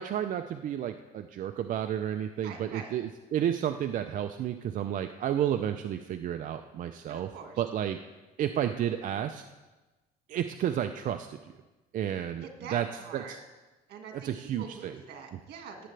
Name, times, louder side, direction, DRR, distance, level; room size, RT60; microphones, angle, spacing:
voice 1, 0.0-7.3 7.6-8.0 8.4-9.4 10.3-11.4 11.9-12.9 13.1-13.4 14.1-14.9, right 10 dB, 50° right, 7 dB, 0.5 m, -31 dB
voice 2, 2.4-2.9 7.1-7.6 12.4-13.4 13.9-15.8, right 6 dB, 75° right, 3 dB, 1.9 m, -44 dB
18.0 x 7.7 x 3.3 m, 1.2 s
cardioid pair, 110°, 17 cm